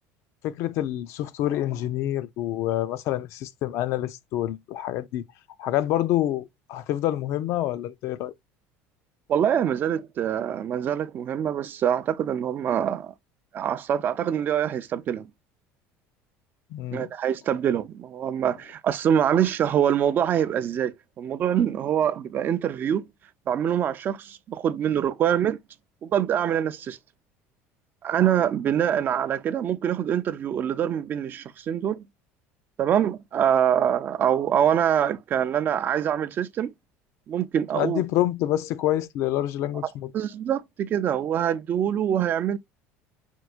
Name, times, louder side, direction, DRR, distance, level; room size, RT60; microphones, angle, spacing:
voice 1, 0.4-5.2 5.6-8.3 16.7-17.1 37.7-40.1, left 13 dB, 60° left, 0.4 m, -27 dB
voice 2, 9.3-13.1 13.5-15.3 16.9-23.1 23.5-25.6 26.0-27.0 28.0-32.0 32.8-36.7 37.3-38.0 40.1-42.6, right 9 dB, 35° right, 0.3 m, -24 dB
4.4 x 2.1 x 2.3 m
cardioid pair, 130°, 6 cm